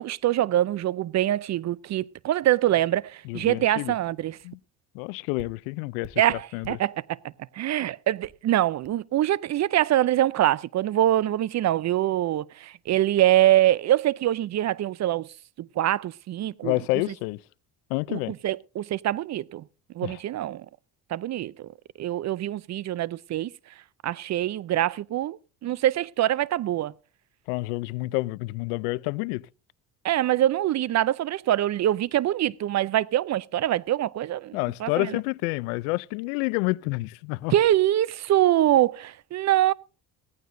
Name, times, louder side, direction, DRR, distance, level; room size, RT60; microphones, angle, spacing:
voice 1, 0.0-4.4 6.2-6.9 7.5-15.3 15.6-16.8 18.1-19.6 20.0-20.7 21.1-21.7 22.0-23.5 24.0-26.9 30.0-35.2 37.5-39.7, right 13 dB, 40° right, 0.5 m, -24 dB
voice 2, 3.2-3.9 4.4-4.6 4.9-6.8 16.6-17.4 17.9-18.3 20.0-20.2 27.5-29.5 34.5-37.5, left 23 dB, 85° left, 0.5 m, -29 dB
sound 1, 3.6-3.7 4.0-4.1 4.4-4.6 5.4-6.9 7.7-7.8 8.2-8.5 8.8-8.9, right 10 dB, 65° right, 1.2 m, -50 dB
17.0 x 14.5 x 2.6 m
supercardioid pair, 75°, 42 cm